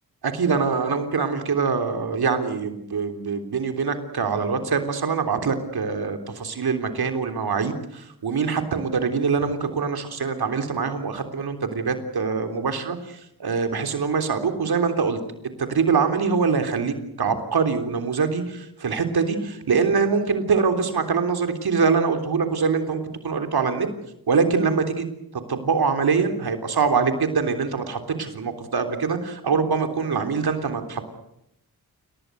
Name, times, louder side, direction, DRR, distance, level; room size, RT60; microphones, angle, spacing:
voice 1, 0.2-15.2 15.6-23.9 24.3-25.1 25.5-31.1, right 5 dB, 80° right, 7 dB, 3.5 m, -24 dB
29.0 x 19.0 x 8.0 m, 0.81 s
wide cardioid pair, 80°, 37 cm